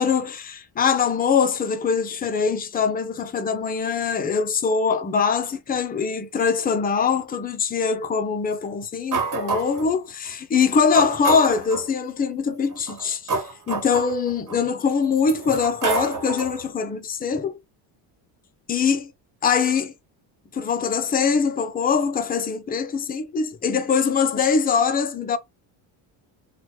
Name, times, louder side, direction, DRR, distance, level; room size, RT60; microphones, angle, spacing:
voice 1, 0.0-17.6 18.7-19.1 19.4-19.9 20.5-25.4, left 6 dB, 20° left, 0.4 m, -23 dB
sound 1, 9.1-9.9 10.6-10.7 10.9-11.9 12.7-14.6 15.2-16.6, right 4 dB, 40° right, 1.2 m, -28 dB
2.9 x 2.2 x 3.0 m
cardioid pair, 105°, 48 cm